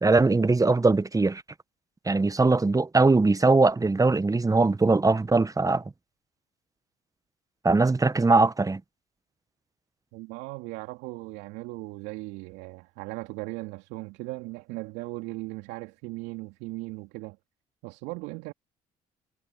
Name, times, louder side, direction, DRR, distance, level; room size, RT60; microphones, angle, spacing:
voice 1, 0.0-1.4 2.1-5.8 7.6-8.8, right 3 dB, 20° right, 1.1 m, -21 dB
voice 2, 10.1-17.4 17.8-18.5, right 23 dB, 75° right, 2.5 m, -38 dB
hypercardioid pair, 50°, 19 cm